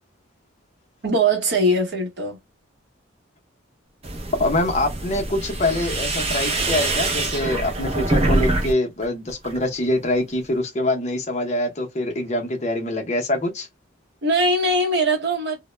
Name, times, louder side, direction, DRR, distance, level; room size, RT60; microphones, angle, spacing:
voice 1, 1.0-2.4 14.2-15.6, right 1 dB, 55° right, 0.8 m, -21 dB
sound 1, 4.0-8.7 9.0-9.7, right 2 dB, 30° right, 0.5 m, -24 dB
voice 2, 4.4-13.7, left 1 dB, 35° left, 0.6 m, -24 dB
2.1 x 2.0 x 3.1 m
head